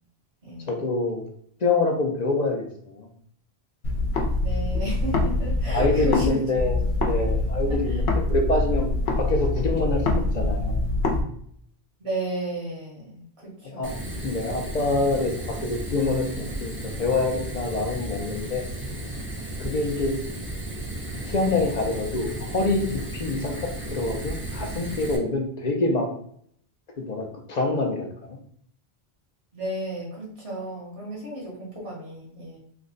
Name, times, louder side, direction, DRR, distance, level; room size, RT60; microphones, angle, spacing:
voice 1, 0.7-1.3 1.6-3.1 5.7-8.9 9.1-10.8 13.6-13.9 14.2-16.7 17.0-18.6 19.6-20.2 21.2-26.1 27.0-28.4, left 2 dB, 50° left, 2 dB, 0.5 m, -26 dB
sound 1, 3.8-6.3 6.6-11.2, left 2 dB, 75° left, 0.9 m, -24 dB
voice 2, 4.4-6.4 7.9-8.0 12.0-14.1 29.5-32.6, right 1 dB, 75° right, -4 dB, 1.6 m, -33 dB
Fire, 13.8-25.2, right 1 dB, 15° right, 0.4 m, -34 dB
3.3 x 2.1 x 3.7 m, 0.64 s
omnidirectional pair, 1.1 m